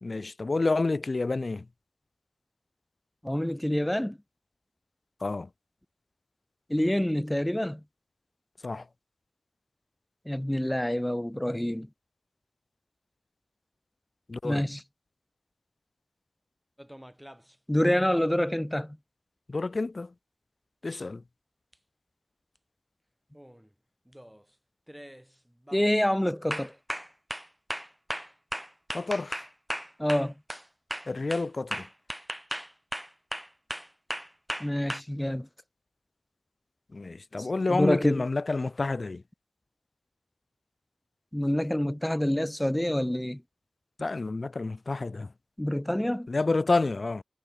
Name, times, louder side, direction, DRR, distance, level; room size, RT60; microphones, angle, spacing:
voice 1, 0.0-1.7 5.2-5.5 8.6-8.8 14.3-14.7 19.5-20.1 20.8-21.2 28.9-29.4 31.1-31.9 36.9-39.2 44.0-45.3 46.3-47.2, left 3 dB, 60° left, 1.0 m, -29 dB
voice 2, 3.2-4.2 6.7-7.8 10.3-11.9 14.4-14.8 17.7-19.0 25.7-26.7 30.0-30.3 34.6-35.5 37.4-38.2 41.3-43.4 45.6-46.3, left 1 dB, 10° left, 0.9 m, -27 dB
sound 1, 16.8-17.5 21.7-21.8 23.3-23.6 24.1-24.4 24.9-25.2 25.7-25.9 26.5-30.7 30.9-35.0, equal, 5° right, 8.0 m, -37 dB
cardioid pair, 45°, 0 cm